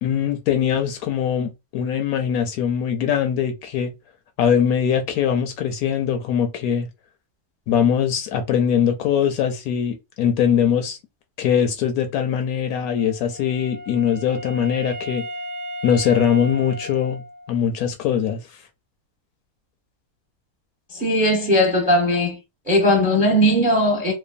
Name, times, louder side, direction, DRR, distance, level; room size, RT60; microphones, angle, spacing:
voice 1, 0.0-3.9 4.4-6.9 7.7-11.0 11.4-15.2 15.8-17.2 17.5-18.4, left 8 dB, 75° left, 1.0 m, -21 dB
Wind instrument woodwind instrument, 13.0-17.7, equal, 75° right, 0.5 m, -35 dB
voice 2, 20.9-22.4 22.7-24.1, equal, 10° right, 0.5 m, -18 dB
3.1 x 2.1 x 2.4 m
omnidirectional pair, 1.6 m